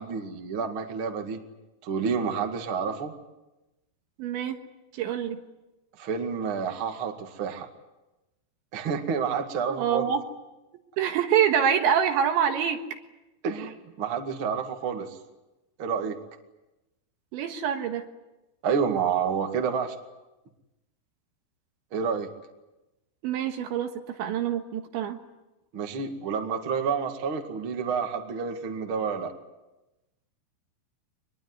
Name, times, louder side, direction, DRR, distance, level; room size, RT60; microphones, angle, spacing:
voice 1, 0.0-1.4 1.8-3.1 6.0-7.7 8.7-10.1 13.4-15.2 15.8-16.2 18.6-19.9 21.9-22.3 25.7-29.3, right 6 dB, 45° right, 4 dB, 1.7 m, -29 dB
voice 2, 4.2-4.6 4.9-5.4 9.7-10.2 11.0-12.8 17.3-18.1 23.2-25.2, right 8 dB, 70° right, 6 dB, 3.6 m, -26 dB
24.0 x 21.5 x 9.6 m, 1.0 s
omnidirectional pair, 5.8 m